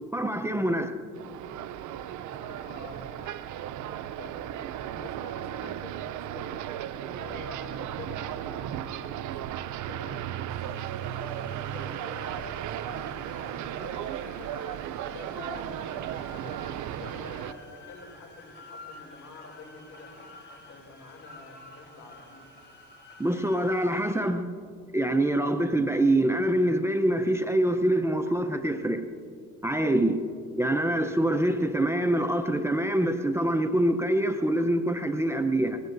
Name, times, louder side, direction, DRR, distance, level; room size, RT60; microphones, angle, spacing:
voice 1, 0.1-0.9 23.2-24.5 24.9-29.1 29.6-30.2 30.6-35.8, right 1 dB, 10° right, 0.6 m, -25 dB
sound 1, 1.1-17.5, right 11 dB, 80° right, 0.5 m, -35 dB
voice 2, 2.2-3.7 4.2-4.5 4.8-6.6 7.1-9.2 9.9-14.5 15.1-20.1 20.5-22.5 30.2-30.4, left 3 dB, 65° left, 3.0 m, -47 dB
sound 2, 10.5-24.2, left 2 dB, 35° left, 3.9 m, -51 dB
21.5 x 19.5 x 2.6 m
cardioid pair, 90°, 30 cm